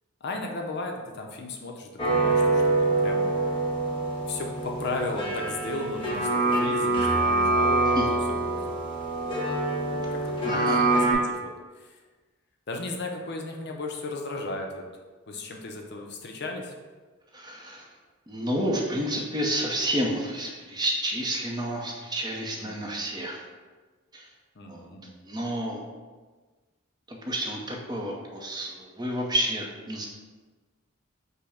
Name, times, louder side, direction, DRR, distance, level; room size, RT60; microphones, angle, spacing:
voice 1, 0.2-3.3 4.3-8.0 8.4-8.7 9.9-11.5 11.8-12.0 12.7-14.8 15.3-16.7 22.6-23.0 24.6-25.2, left 2 dB, 55° left, 2 dB, 0.5 m, -35 dB
sound 1, 2.0-11.1, right 2 dB, 25° left, 0.8 m, -25 dB
voice 2, 10.5-10.9 17.3-17.9 18.3-23.4 24.1-24.3 24.7-24.8 25.2-25.9 27.1-30.1, right 1 dB, 20° right, -1 dB, 0.6 m, -30 dB
5.4 x 2.0 x 4.9 m, 1.3 s
head